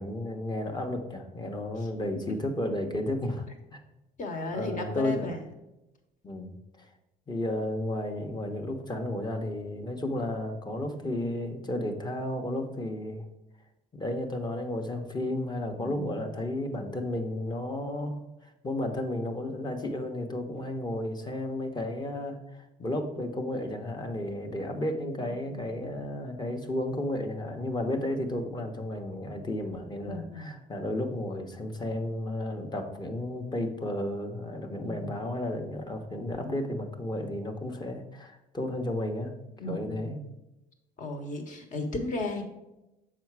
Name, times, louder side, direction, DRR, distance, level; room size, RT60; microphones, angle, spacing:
voice 1, 0.0-3.5 3.7-3.8 4.5-5.3 6.2-6.5 7.3-13.2 13.9-18.2 18.6-22.4 22.8-39.3 39.6-40.2, left 1 dB, 25° left, 4 dB, 1.0 m, -33 dB
voice 2, 4.2-5.4 15.8-16.3 24.5-25.6 30.0-30.6 34.7-35.2 39.6-40.3 41.0-42.4, left 2 dB, 50° left, 5 dB, 1.3 m, -36 dB
6.9 x 4.9 x 4.7 m, 0.95 s
cardioid pair, 110°, 17 cm